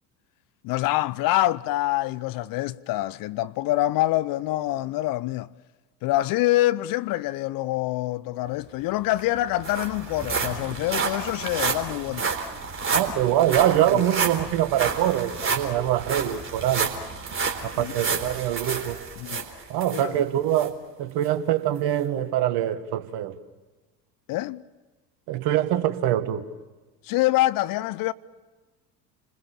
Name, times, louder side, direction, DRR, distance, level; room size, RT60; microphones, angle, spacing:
voice 1, 0.6-5.5 6.0-12.3 13.9-14.0 17.8-17.9 19.2-19.4 19.9-20.2 24.3-24.6 27.0-28.1, left 16 dB, 45° left, 0.7 m, -25 dB
sound 1, 8.8-8.9 9.2-20.1 20.5-20.7 21.2-21.3, right 5 dB, 25° right, 3.8 m, -30 dB
voice 2, 12.9-16.9 17.6-19.0 19.7-23.4 25.3-26.5, right 12 dB, 50° right, 1.8 m, -24 dB
29.0 x 21.0 x 7.3 m
figure-of-eight pair, 70°, 49 cm